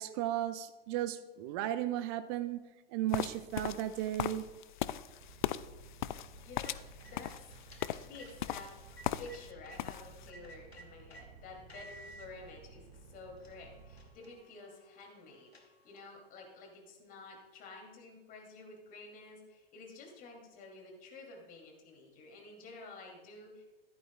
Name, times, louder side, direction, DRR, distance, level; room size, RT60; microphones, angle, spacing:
voice 1, 0.0-2.6 2.9-4.5, right 12 dB, 25° right, 11 dB, 0.4 m, -35 dB
sound 1, 3.1-9.5 9.8-10.3, left 12 dB, 50° left, 0.4 m, -38 dB
sound 2, 5.2-14.1, right 5 dB, 55° right, 1.8 m, -55 dB
sound 3, 6.4-9.8 10.3-11.3 11.7-12.3 12.9-13.0 13.4-16.2, right 2 dB, 85° left, 1.4 m, -56 dB
voice 2, 6.4-7.5 8.0-8.7 9.2-23.6, left 3 dB, 30° left, 1 dB, 2.7 m, -51 dB
14.5 x 11.0 x 2.3 m, 1.1 s
figure-of-eight pair, 100°, 30 cm